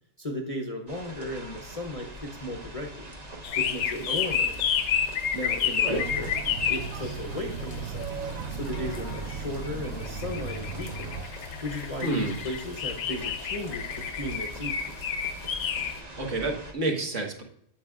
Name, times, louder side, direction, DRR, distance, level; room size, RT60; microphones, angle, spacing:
voice 1, 0.2-3.1 3.6-4.5 5.3-6.3 6.7-8.1 8.5-11.1 11.6-15.0, left 1 dB, 35° left, 3 dB, 0.6 m, -35 dB
sound 1, 0.9-16.7, right 1 dB, 30° right, 1.1 m, -44 dB
sound 2, 3.4-16.0, left 7 dB, 65° left, 0.9 m, -31 dB
sound 3, 6.0-11.3, right 5 dB, 80° right, 1.0 m, -36 dB
voice 2, 12.0-12.4 16.2-17.4, right 2 dB, 60° right, 1 dB, 1.7 m, -29 dB
9.0 x 7.7 x 2.4 m, 0.72 s
omnidirectional pair, 1.4 m